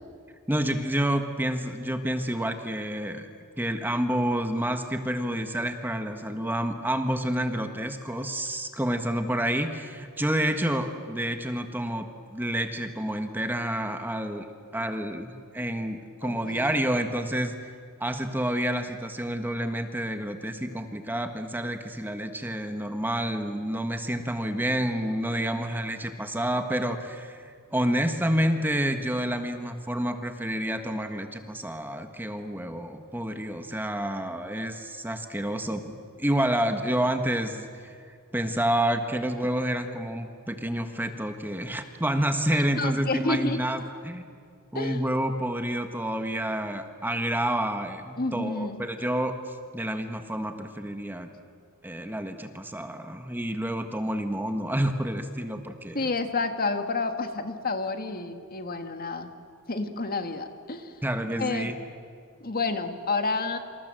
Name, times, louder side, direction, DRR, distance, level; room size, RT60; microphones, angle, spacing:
voice 1, 0.5-3.3 3.6-14.5 14.7-17.6 18.0-38.0 38.3-44.3 44.7-49.4 49.7-51.3 51.8-56.1 61.0-61.8, right 1 dB, 10° right, 6 dB, 1.5 m, -29 dB
voice 2, 16.2-16.8 42.8-43.6 44.7-45.1 48.2-48.8 55.9-59.3 59.7-60.9 61.4-61.7 62.4-63.6, left 3 dB, 45° left, 7 dB, 1.8 m, -30 dB
28.0 x 26.5 x 7.7 m, 2.3 s
head